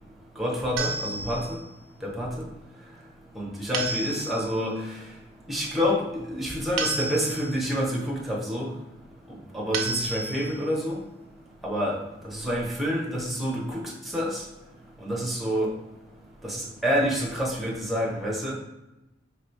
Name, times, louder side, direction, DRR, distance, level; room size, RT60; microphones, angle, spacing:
voice 1, 0.4-1.6 2.0-2.5 3.3-4.9 5.5-8.7 9.3-11.0 11.6-12.0 12.2-14.4 15.0-15.7 16.4-18.5, equal, ahead, -4 dB, 0.9 m, -28 dB
sound 1, 0.8-1.7 3.7-4.6 6.8-7.7 9.7-10.7, right 4 dB, 70° right, 0.5 m, -31 dB
3.0 x 2.9 x 4.5 m, 0.94 s
head